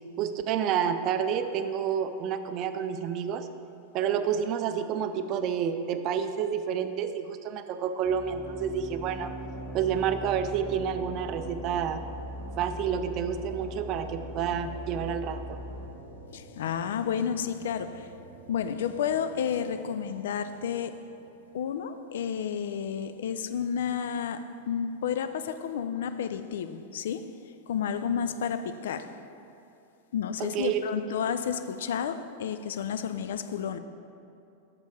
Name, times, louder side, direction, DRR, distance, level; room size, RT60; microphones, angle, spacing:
voice 1, 0.2-3.5 3.9-9.3 9.7-12.0 12.6-15.6 30.4-30.9, right 8 dB, 40° right, 9 dB, 0.4 m, -29 dB
sound 1, 8.0-15.9, equal, 10° right, 1.6 m, -40 dB
sound 2, 8.8-22.0, right 1 dB, 85° left, 0.9 m, -49 dB
voice 2, 16.3-18.1 18.5-21.0 21.5-27.3 27.7-29.1 30.1-33.8, left 7 dB, 60° left, 10 dB, 0.3 m, -31 dB
6.7 x 5.1 x 5.0 m, 2.6 s
figure-of-eight pair, 90°, 0 cm